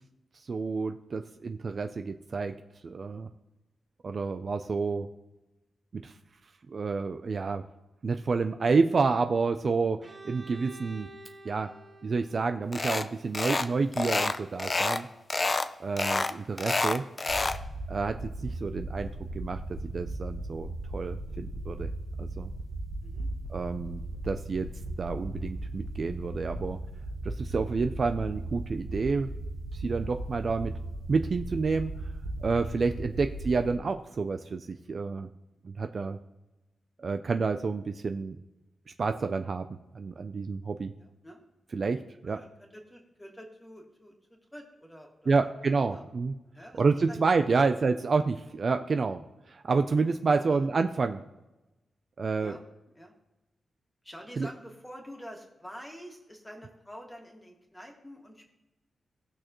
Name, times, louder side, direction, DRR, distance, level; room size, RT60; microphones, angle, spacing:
voice 1, 0.4-2.5 2.8-3.3 4.0-5.1 5.9-6.1 6.7-7.6 8.0-11.1 11.4-11.7 12.0-15.1 15.8-17.0 17.9-19.1 19.3-21.9 22.2-22.5 23.5-24.7 25.0-26.8 27.2-29.3 29.7-30.7 31.1-32.0 32.4-35.3 35.6-36.2 37.0-38.4 39.0-39.7 39.9-40.9 41.7-42.4 45.3-46.3 46.7-49.2 49.5-51.2 52.2-52.6 54.4-54.5, right 4 dB, 40° right, 7 dB, 0.4 m, -29 dB
Bowed string instrument, 10.0-13.8, right 3 dB, 20° right, 1.0 m, -50 dB
sound 1, 12.7-13.1 13.3-13.7 13.9-15.0 15.3-15.7 16.0-17.6, left 3 dB, 30° left, 0.5 m, -28 dB
voice 2, 15.7-16.4 23.0-23.3 24.0-24.1 41.0-41.4 42.2-45.5 45.9-46.1 46.5-46.8 47.1-47.2 47.6-47.7 50.3-50.6 52.4-52.6 53.0-53.1 54.0-58.5, equal, 10° left, 1 dB, 2.0 m, -47 dB
sound 2, 17.3-33.7, right 1 dB, 65° right, 1.1 m, -37 dB
18.5 x 6.4 x 3.0 m, 1.0 s
wide cardioid pair, 140°, 0 cm